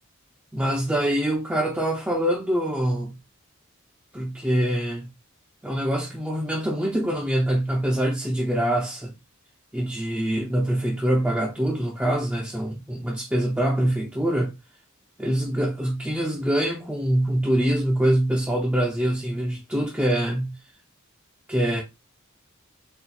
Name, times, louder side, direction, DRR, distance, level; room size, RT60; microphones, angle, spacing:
voice 1, 0.5-3.1 4.1-5.1 5.6-9.1 9.7-14.5 15.2-20.6 21.5-21.8, right 1 dB, 5° right, 0.6 m, -24 dB
4.2 x 2.3 x 3.8 m
head